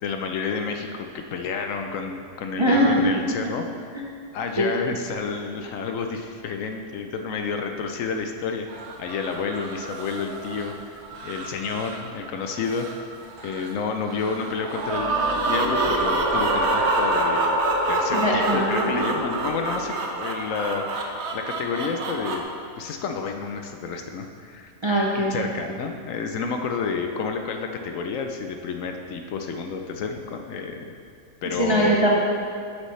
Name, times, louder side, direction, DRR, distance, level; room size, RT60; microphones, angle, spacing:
voice 1, 0.0-4.0 4.3-13.0 13.4-17.6 17.9-22.4 22.8-24.7 25.3-30.9 31.4-32.0, left 5 dB, 70° left, 5 dB, 0.9 m, -30 dB
sound 1, 8.7-22.4, right 3 dB, 55° right, 1.0 m, -29 dB
sound 2, 14.8-19.9, right 1 dB, 80° right, 1.7 m, -27 dB
voice 2, 18.1-19.1 24.8-25.5 31.6-32.2, right 1 dB, 30° right, -3 dB, 0.6 m, -22 dB
9.5 x 6.4 x 3.2 m, 2.3 s
omnidirectional pair, 1.5 m